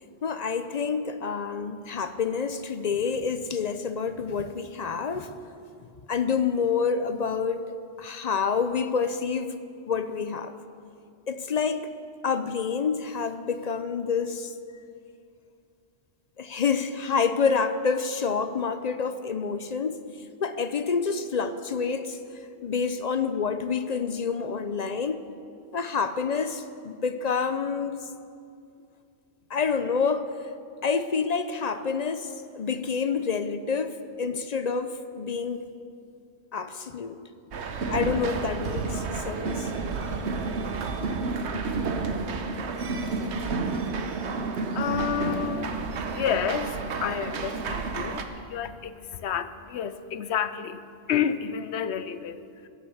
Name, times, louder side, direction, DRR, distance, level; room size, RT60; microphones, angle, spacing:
voice 1, 0.2-5.4 6.1-7.6 8.0-9.6 9.8-10.6 11.3-11.9 12.2-14.5 16.4-20.0 20.4-22.2 22.6-25.2 25.7-28.0 29.5-30.3 30.8-35.6 36.5-37.2 37.9-39.7 41.6-41.7, left 5 dB, 50° left, 10 dB, 0.6 m, -28 dB
sound 1, 37.5-48.2, right 4 dB, 85° right, 1.2 m, -30 dB
voice 2, 44.5-52.7, left 8 dB, 80° left, 13 dB, 0.9 m, -30 dB
15.5 x 8.5 x 7.1 m, 2.4 s
omnidirectional pair, 1.1 m